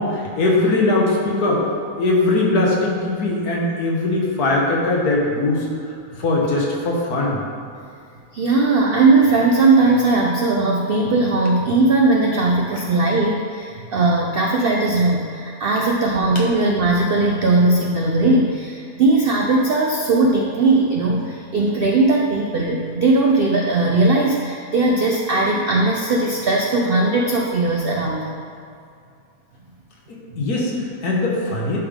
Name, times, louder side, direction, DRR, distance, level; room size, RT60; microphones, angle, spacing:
voice 1, 0.0-1.6 2.0-5.9 6.2-7.4 16.3-16.4 30.1-31.8, left 2 dB, 80° left, -3 dB, 1.7 m, -20 dB
voice 2, 8.3-28.4 30.4-30.5, right 2 dB, 75° right, 0 dB, 0.5 m, -18 dB
10.5 x 3.6 x 3.6 m, 2.4 s
omnidirectional pair, 1.6 m